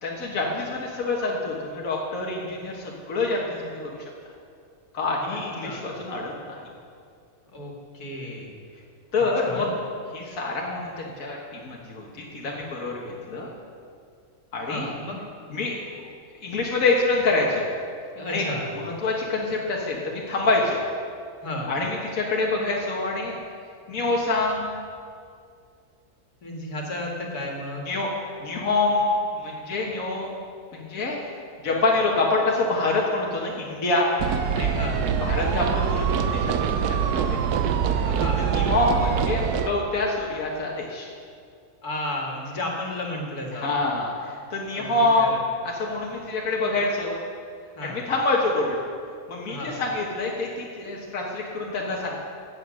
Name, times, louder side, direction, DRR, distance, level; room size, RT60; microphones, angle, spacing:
voice 1, 0.0-4.1 4.9-6.6 9.1-9.7 10.1-13.5 14.5-14.9 15.5-16.1 16.4-17.7 18.3-18.5 18.8-20.8 21.7-23.4 23.9-24.7 27.9-28.1 28.4-30.5 30.7-31.2 31.6-34.1 34.6-34.8 35.2-37.4 37.9-38.1 38.4-41.1 43.5-45.4 45.6-47.1 47.8-48.8 49.3-52.2, left 2 dB, 65° left, -3 dB, 1.9 m, -26 dB
voice 2, 5.3-5.8 7.5-8.5 9.4-9.7 14.7-15.2 18.1-18.7 21.4-21.7 26.4-27.9 34.7-35.0 38.1-38.5 41.8-43.9 44.7-45.4 47.8-48.0 49.5-49.8, left 1 dB, 80° left, -1 dB, 2.6 m, -33 dB
sound 1, 34.2-39.7, right 7 dB, 85° right, 1.3 m, -24 dB
16.5 x 8.6 x 6.3 m, 2.3 s
omnidirectional pair, 1.6 m